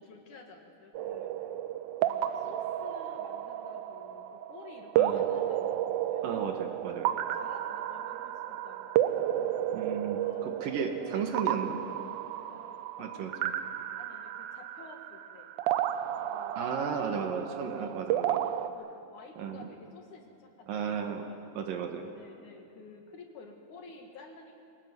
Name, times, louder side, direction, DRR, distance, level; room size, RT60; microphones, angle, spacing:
voice 1, 0.0-1.5 2.0-6.6 7.1-9.2 10.2-11.2 11.6-12.1 12.5-13.7 14.0-15.5 16.3-21.7 22.1-24.6, left 3 dB, 55° left, 3 dB, 2.7 m, -52 dB
sound 1, 0.9-18.7, right 11 dB, 90° right, 1.7 m, -32 dB
voice 2, 5.0-5.3 6.2-7.1 9.7-11.8 13.0-13.5 16.6-18.4 19.4-19.7 20.7-22.1, right 6 dB, 65° right, 5 dB, 2.7 m, -34 dB
23.5 x 18.0 x 9.5 m, 2.7 s
omnidirectional pair, 4.7 m